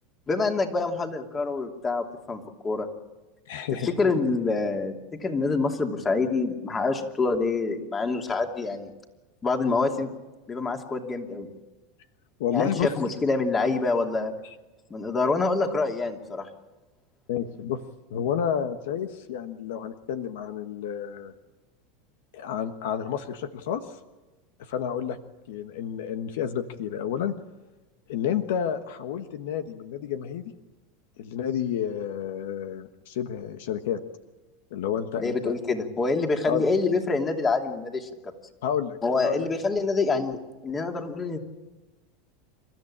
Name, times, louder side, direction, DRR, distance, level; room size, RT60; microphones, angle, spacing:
voice 1, 0.3-2.9 3.8-4.9 5.2-8.9 9.4-10.1 10.5-11.5 12.5-14.3 14.9-16.5 35.2-38.1 39.0-40.4 40.6-41.4, left 3 dB, 20° left, 4 dB, 2.8 m, -26 dB
voice 2, 3.5-3.9 12.4-12.9 14.4-14.5 17.3-17.8 18.1-21.3 22.3-24.0 24.6-25.2 25.5-27.3 28.1-30.4 31.2-34.0 34.7-35.6 36.5-36.6 38.6-39.0 39.2-39.5, left 8 dB, 80° left, 9 dB, 1.3 m, -30 dB
28.5 x 13.5 x 8.8 m, 1.2 s
supercardioid pair, 120°, 0 cm